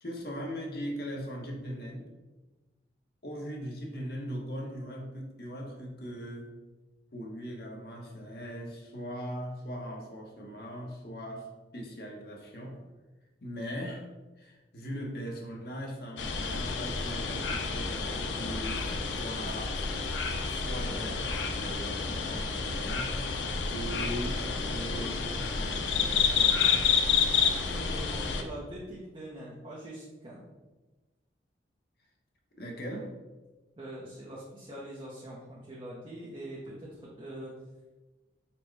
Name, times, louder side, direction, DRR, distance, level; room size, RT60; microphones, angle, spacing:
voice 1, 0.0-2.1 3.2-6.5 7.1-11.5 11.7-12.8 13.4-14.1 14.4-19.8 20.5-23.2 23.7-26.9 32.5-33.1, equal, 55° left, 0 dB, 0.8 m, -40 dB
sound 1, 16.2-28.4, left 5 dB, 80° left, 0.5 m, -29 dB
voice 2, 27.7-30.5 33.8-37.5, right 1 dB, 25° right, -5 dB, 0.6 m, -43 dB
4.3 x 2.1 x 4.5 m, 1.2 s
head